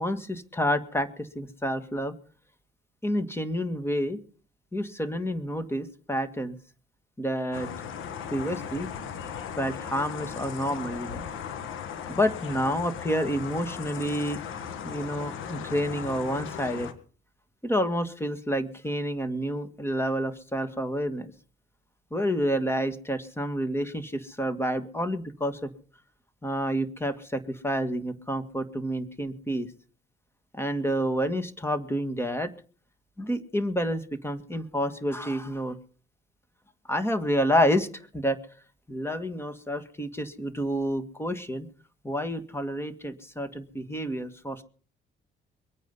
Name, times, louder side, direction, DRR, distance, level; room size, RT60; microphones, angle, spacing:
voice 1, 0.0-2.2 3.0-4.2 4.7-6.6 7.2-7.7 8.3-8.9 9.6-11.3 12.1-14.4 14.8-16.9 17.6-21.3 22.1-25.7 26.4-29.7 30.5-32.5 33.2-35.8 36.9-38.4 38.9-41.7 42.0-44.6, equal, 10° left, 9 dB, 1.9 m, -29 dB
sound 1, 7.5-16.9, left 8 dB, 85° left, 1.6 m, -37 dB
23.0 x 9.1 x 5.5 m, 0.42 s
cardioid pair, 90°, 20 cm